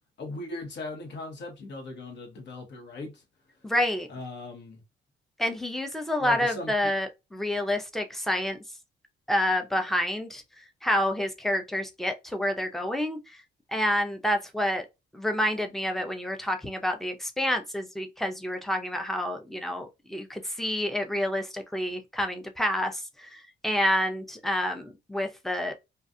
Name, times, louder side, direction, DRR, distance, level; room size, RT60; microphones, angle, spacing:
voice 1, 0.2-3.2 4.1-4.8 6.2-6.7, left 2 dB, 65° left, 1.1 m, -38 dB
voice 2, 3.6-4.1 5.4-8.6 9.3-10.4 10.8-13.2 13.7-14.8 15.1-25.7, left 1 dB, ahead, 0.5 m, -28 dB
2.4 x 2.3 x 2.6 m
cardioid pair, 90°, 20 cm